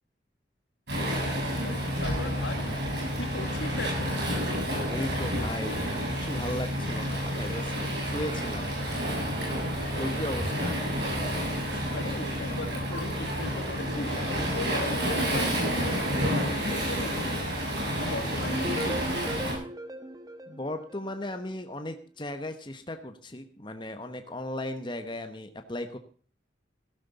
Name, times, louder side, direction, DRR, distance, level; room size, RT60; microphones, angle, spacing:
Waves surf, 0.9-19.5, equal, 65° right, 6.6 m, -30 dB
voice 1, 2.0-2.7 3.2-4.2 11.9-17.5 18.0-19.4, left 2 dB, 85° left, 9 dB, 1.9 m, -38 dB
voice 2, 4.9-7.7 8.0-8.8 10.0-10.8 18.0-18.5 20.5-26.0, left 1 dB, 25° left, 7 dB, 1.2 m, -36 dB
sound 1, 18.5-21.5, right 1 dB, 20° right, 1.3 m, -37 dB
15.5 x 12.5 x 4.2 m, 0.43 s
head